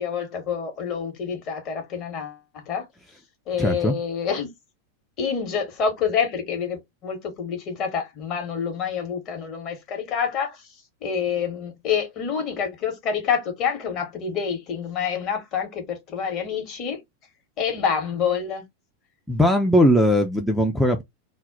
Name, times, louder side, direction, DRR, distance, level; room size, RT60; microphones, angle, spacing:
voice 1, 0.0-2.9 3.5-4.5 5.2-10.7 11.0-17.0 17.6-18.6, left 7 dB, 35° left, 0.9 m, -27 dB
voice 2, 3.6-3.9 19.3-21.0, equal, ahead, 0.4 m, -19 dB
2.1 x 2.0 x 3.7 m
figure-of-eight pair, 90°, 0 cm